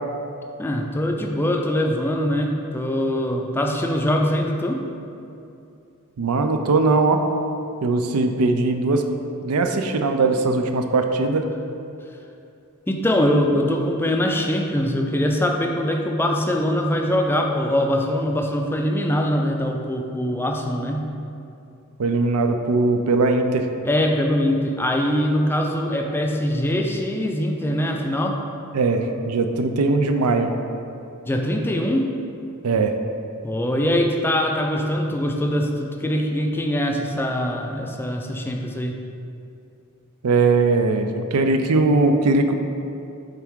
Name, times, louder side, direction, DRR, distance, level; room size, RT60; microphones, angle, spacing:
voice 1, 0.6-4.8 12.9-21.1 23.8-28.4 31.3-32.1 33.4-39.0, equal, 10° left, 2 dB, 0.4 m, -22 dB
voice 2, 6.2-7.2 7.8-9.0 9.4-11.5 22.0-23.7 28.7-30.5 32.6-33.0 40.2-42.5, right 3 dB, 85° right, 5 dB, 0.5 m, -20 dB
9.1 x 3.5 x 3.7 m, 2.7 s
head